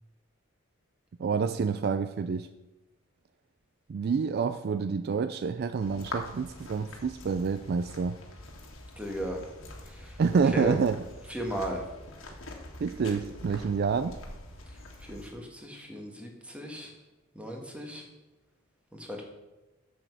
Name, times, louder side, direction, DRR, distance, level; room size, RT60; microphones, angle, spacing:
voice 1, 1.2-2.5 3.9-8.2 10.2-11.0 12.8-14.2, right 5 dB, 50° right, 12 dB, 0.3 m, -28 dB
sound 1, 5.8-15.3, left 2 dB, 70° left, 1.6 m, -44 dB
voice 2, 9.0-9.4 9.9-10.1 10.5-10.7 11.3-11.8 15.1-16.9 17.3-18.0 18.9-19.2, equal, 5° right, 1 dB, 1.7 m, -36 dB
7.4 x 7.1 x 6.1 m, 1.0 s
head